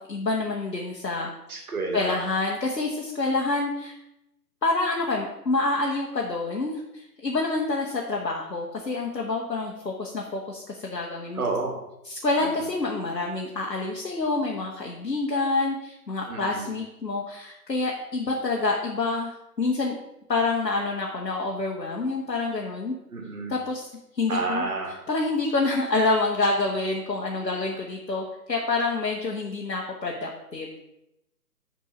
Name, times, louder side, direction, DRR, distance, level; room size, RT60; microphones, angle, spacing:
voice 1, 0.0-1.6 1.9-3.9 4.6-11.4 12.0-19.9 20.3-22.9 23.5-23.9 24.1-24.6 25.1-30.8, left 3 dB, 80° left, -1 dB, 1.4 m, -27 dB
voice 2, 1.5-2.2 11.3-11.7 12.4-12.5 16.3-16.7 23.1-23.5 24.3-25.0, right 3 dB, 60° right, 2 dB, 2.1 m, -30 dB
7.6 x 4.5 x 5.5 m, 0.87 s
figure-of-eight pair, 140°, 49 cm